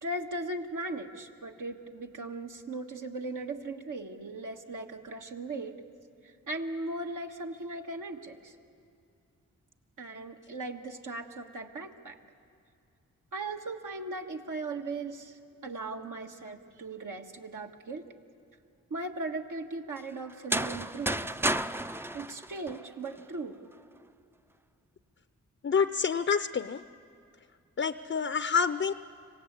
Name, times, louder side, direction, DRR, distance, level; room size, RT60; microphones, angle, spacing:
voice 1, 0.0-5.8 6.2-8.6 10.0-12.2 13.3-18.0 18.9-21.4 22.1-23.6, right 2 dB, 70° right, 2 dB, 1.8 m, -38 dB
sound 1, 20.3-23.2, right 1 dB, 5° right, 0.5 m, -32 dB
voice 2, 25.6-26.8 27.8-28.9, left 6 dB, 40° left, 12 dB, 0.6 m, -27 dB
26.0 x 17.0 x 8.4 m, 2.5 s
cardioid pair, 45°, 33 cm